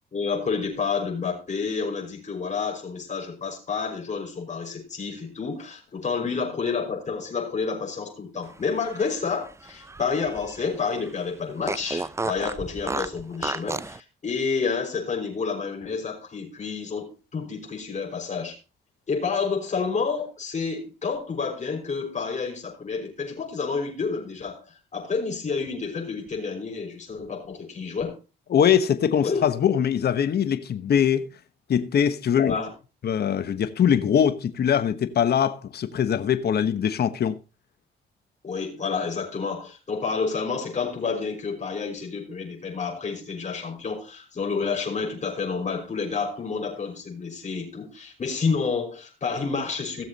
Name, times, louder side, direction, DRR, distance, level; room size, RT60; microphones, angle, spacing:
voice 1, 0.1-18.6 19.1-28.2 29.2-29.5 32.4-32.7 38.4-50.0, left 5 dB, 35° left, 5.7 m, -29 dB
Fart, 8.7-10.7 11.0-11.1 11.6-14.0, right 3 dB, 15° right, 0.5 m, -32 dB
voice 2, 28.5-31.3 31.7-32.6 33.0-37.3, left 8 dB, 55° left, 1.2 m, -22 dB
16.5 x 7.2 x 4.1 m
cardioid pair, 90°, 20 cm